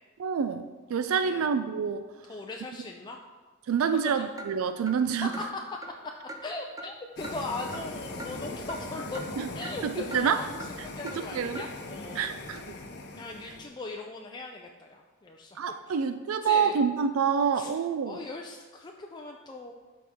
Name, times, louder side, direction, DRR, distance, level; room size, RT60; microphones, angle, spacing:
voice 1, 0.2-0.6 0.9-2.1 3.7-5.3 9.4-10.4 11.0-11.7 12.1-12.6 15.6-18.2, right 6 dB, 85° right, 10 dB, 0.4 m, -27 dB
voice 2, 2.3-3.2 5.2-5.6 6.0-6.1 6.4-10.6 10.8-12.3 13.2-15.6 15.9-16.0 16.4-16.8 17.5-17.7 18.1-19.7, left 2 dB, 20° left, 1 dB, 0.4 m, -39 dB
Clock, 4.4-4.5 4.9-5.0 5.3-5.5 5.8-5.9 6.3-6.4 6.8-6.9 7.2-7.4 7.7-7.8 8.2-8.3 8.7-8.8 9.1-9.3 9.6-9.8 10.1-10.2 10.6-10.7 11.1-11.2 11.5-11.7, right 2 dB, 15° right, 0.6 m, -41 dB
sound 1, 7.2-13.7, left 2 dB, 55° left, 0.8 m, -40 dB
12.5 x 4.2 x 3.6 m, 1.4 s
head